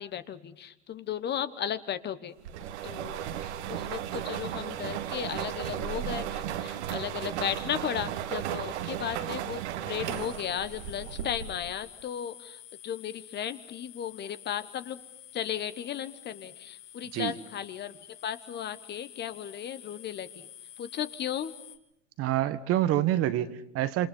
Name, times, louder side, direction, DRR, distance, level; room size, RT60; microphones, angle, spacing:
voice 1, 0.0-2.3 2.8-15.0 15.3-18.0 18.2-20.5 20.8-21.5, left 9 dB, 30° left, 13 dB, 1.2 m, -35 dB
sound 1, 2.4-11.8, right 10 dB, 70° right, 1.9 m, -35 dB
sound 2, 10.0-21.8, left 11 dB, 45° left, 2.6 m, -50 dB
voice 2, 22.2-24.1, right 13 dB, 40° right, 13 dB, 1.4 m, -27 dB
28.0 x 26.5 x 5.4 m, 0.77 s
hypercardioid pair, 110°, 35 cm